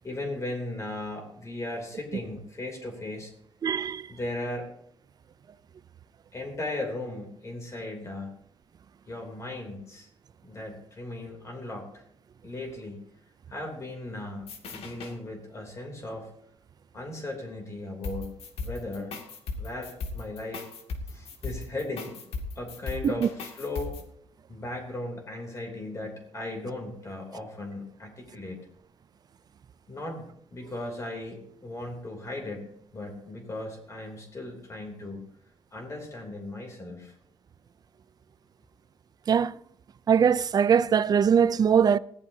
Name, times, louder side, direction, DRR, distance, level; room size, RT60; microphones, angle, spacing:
voice 1, 0.0-3.3 4.1-4.7 6.3-8.3 9.1-10.1 10.4-12.0 12.4-13.0 13.5-16.3 16.9-18.3 18.6-19.2 19.6-20.7 21.1-22.1 22.5-24.0 24.5-28.7 29.9-35.2 35.7-37.2, left 2 dB, 30° left, 3.2 m, -37 dB
voice 2, 3.6-4.1 23.0-23.1 39.3-39.5 40.1-42.0, right 7 dB, 40° right, 0.5 m, -21 dB
sound 1, 14.4-15.2 18.0-24.0, left 3 dB, 80° left, 2.3 m, -37 dB
20.0 x 15.5 x 2.8 m
cardioid pair, 140°, 10 cm